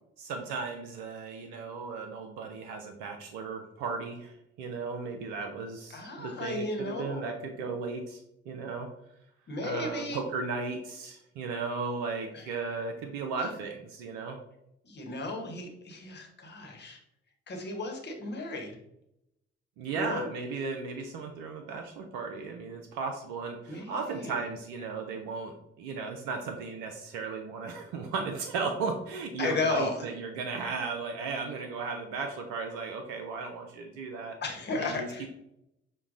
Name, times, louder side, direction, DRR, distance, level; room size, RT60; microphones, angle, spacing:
voice 1, 0.2-8.9 9.6-14.4 19.8-34.4 34.8-35.3, right 4 dB, 60° right, 4 dB, 0.6 m, -36 dB
voice 2, 5.9-7.3 9.5-10.2 12.3-12.5 14.8-17.0 17.5-18.8 19.9-20.3 23.7-24.4 29.4-30.0 34.4-35.3, left 3 dB, 30° left, 2 dB, 1.1 m, -34 dB
5.8 x 2.2 x 3.7 m, 0.81 s
figure-of-eight pair, 45°, 33 cm